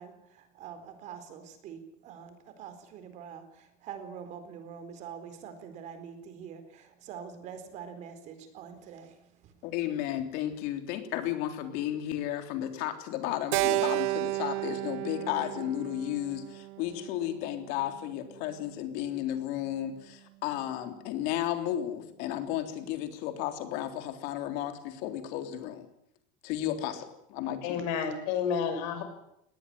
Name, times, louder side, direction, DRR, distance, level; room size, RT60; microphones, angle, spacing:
voice 1, 0.0-9.6, right 7 dB, 45° right, 10 dB, 4.2 m, -45 dB
voice 2, 9.6-25.9 26.4-27.9, left 12 dB, 65° left, 7 dB, 3.5 m, -33 dB
Keyboard (musical), 13.5-17.9, right 21 dB, 80° right, 1.1 m, -32 dB
voice 3, 27.6-29.0, left 7 dB, 90° left, 8 dB, 6.2 m, -30 dB
20.0 x 19.0 x 10.0 m, 0.77 s
cardioid pair, 180°, 17 cm